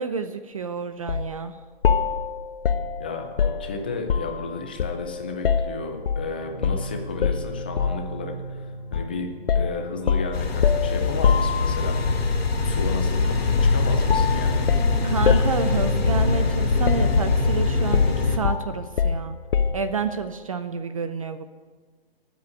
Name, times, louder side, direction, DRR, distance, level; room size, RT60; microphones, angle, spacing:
voice 1, 0.0-1.6 15.0-19.4 19.7-21.5, right 5 dB, 35° right, 11 dB, 0.5 m, -29 dB
sound 1, 1.1-1.3 1.8-4.4 4.8-6.3 6.6-6.9 7.2-8.1 8.9-9.1 9.5-12.0 13.6-13.8 14.1-16.6 16.9-17.5 17.9-19.9, left 6 dB, 65° left, 0.8 m, -24 dB
voice 2, 3.0-9.3 9.5-11.9 12.6-14.6, left 3 dB, 10° left, 3 dB, 0.4 m, -33 dB
sound 2, 6.4-20.1, equal, 30° left, 2.7 m, -40 dB
sound 3, 10.3-18.4, left 3 dB, 85° left, 2.6 m, -23 dB
12.0 x 8.2 x 9.2 m, 1.4 s
hypercardioid pair, 165°, 30 cm